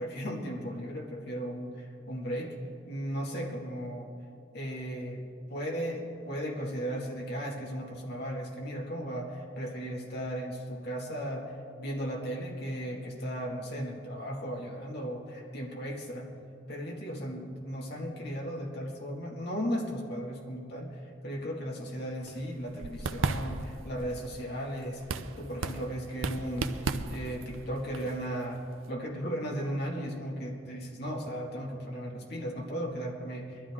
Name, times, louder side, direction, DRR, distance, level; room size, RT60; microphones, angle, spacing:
voice 1, 0.0-2.5 2.9-4.1 4.5-5.2 5.5-16.3 16.7-28.6 28.9-33.7, equal, 55° left, -1 dB, 2.0 m, -36 dB
sound 1, 22.2-28.9, right 3 dB, 85° right, 0.6 m, -36 dB
21.5 x 13.0 x 3.6 m, 2.5 s
head